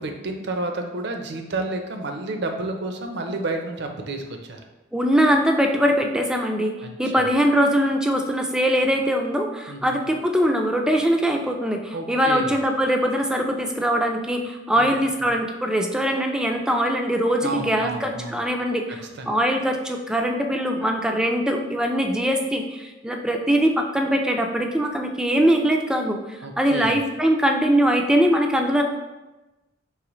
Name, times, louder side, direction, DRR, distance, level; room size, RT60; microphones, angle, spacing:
voice 1, 0.0-4.6 6.8-7.2 9.7-9.9 11.9-12.5 14.8-15.0 15.3-15.4 17.4-18.4 19.1-19.4 26.4-27.0, right 2 dB, 65° right, 4 dB, 0.6 m, -30 dB
voice 2, 4.9-19.0 19.3-28.8, equal, 5° right, 3 dB, 0.3 m, -22 dB
4.9 x 3.3 x 3.0 m, 1.1 s
head